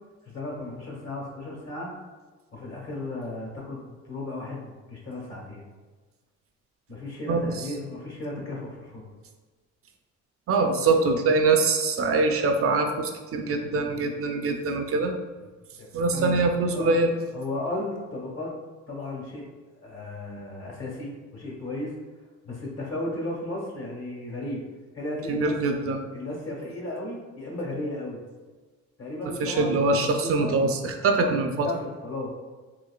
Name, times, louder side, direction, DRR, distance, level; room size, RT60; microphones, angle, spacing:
voice 1, 0.2-1.9 2.5-5.6 6.9-9.1 15.8-16.4 16.7-17.0 17.3-18.5 18.9-19.4 19.8-22.0 22.4-24.6 24.9-25.5 26.1-28.2 29.0-30.6 31.2-31.3 31.6-32.3, left 2 dB, 55° left, -2 dB, 1.2 m, -35 dB
voice 2, 7.3-7.6 10.5-15.1 15.9-17.1 25.3-26.0 29.4-31.7, right 3 dB, 50° right, 5 dB, 0.4 m, -23 dB
3.8 x 3.1 x 2.2 m, 1.3 s
cardioid pair, 90°, 30 cm